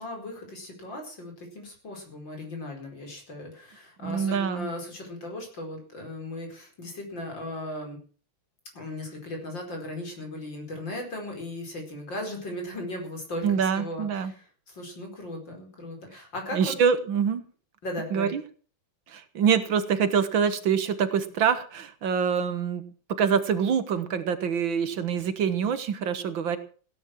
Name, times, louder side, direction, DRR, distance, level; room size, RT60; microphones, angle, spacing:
voice 1, 0.0-8.0 8.7-16.7 17.8-18.3, left 1 dB, 60° left, 2 dB, 5.5 m, -37 dB
voice 2, 4.0-4.7 13.4-14.3 16.5-17.4 18.1-18.4 19.1-22.8 23.2-26.6, right 7 dB, 70° right, 11 dB, 1.9 m, -25 dB
16.5 x 9.9 x 6.2 m, 0.41 s
omnidirectional pair, 2.3 m